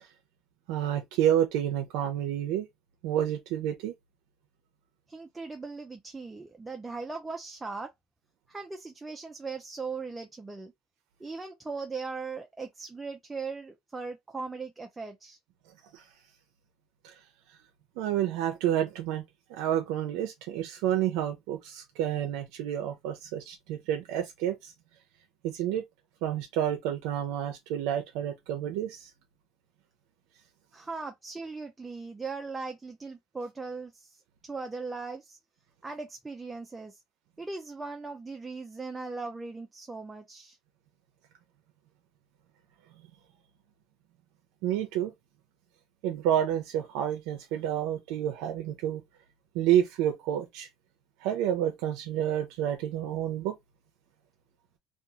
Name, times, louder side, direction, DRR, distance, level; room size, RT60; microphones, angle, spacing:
voice 1, 0.7-2.7 3.0-3.9 15.9-16.0 17.0-17.1 18.0-19.2 19.5-24.7 25.4-25.8 26.2-29.1 44.6-45.1 46.0-49.0 49.5-50.7 51.2-53.5, right 11 dB, 75° right, 0.5 m, -29 dB
voice 2, 5.1-7.9 8.5-10.7 11.2-15.4 30.7-35.4 35.8-37.0 37.4-40.6, right 4 dB, 10° right, 0.4 m, -39 dB
2.5 x 2.3 x 2.7 m
cardioid pair, 140°, 0 cm